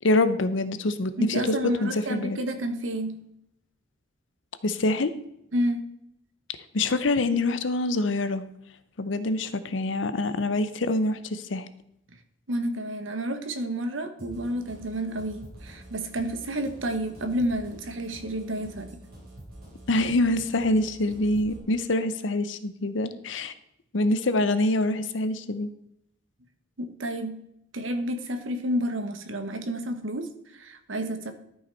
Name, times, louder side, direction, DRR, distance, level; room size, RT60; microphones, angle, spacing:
voice 1, 0.0-2.4 4.6-5.1 6.7-8.4 9.0-11.7 19.9-23.5 23.9-25.7, left 2 dB, 70° left, 13 dB, 0.7 m, -25 dB
voice 2, 1.2-3.2 5.5-5.8 12.5-18.9 26.8-27.4 27.7-31.3, equal, 85° right, 8 dB, 1.1 m, -30 dB
sound 1, 14.2-21.6, right 1 dB, 55° right, 3.7 m, -47 dB
12.5 x 5.7 x 4.4 m, 0.77 s
head